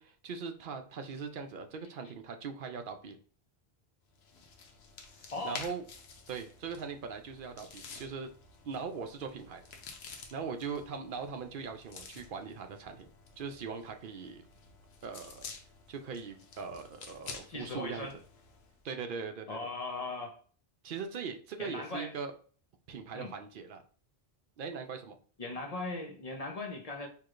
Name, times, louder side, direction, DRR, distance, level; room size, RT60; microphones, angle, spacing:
voice 1, 0.0-3.2 5.2-5.9 6.3-8.3 8.6-9.6 10.3-13.1 13.4-14.4 15.0-15.5 15.9-18.1 18.8-19.7 20.8-22.3 22.9-23.8 24.6-25.2, right 5 dB, 60° right, 0.7 m, -40 dB
sound 1, 4.1-18.8, left 5 dB, 75° left, 0.9 m, -50 dB
voice 2, 5.3-5.6 17.5-18.2 19.5-20.4 21.6-22.1 23.1-23.3 25.4-27.1, left 2 dB, 40° left, 0.7 m, -39 dB
4.6 x 2.9 x 2.5 m
omnidirectional pair, 1.1 m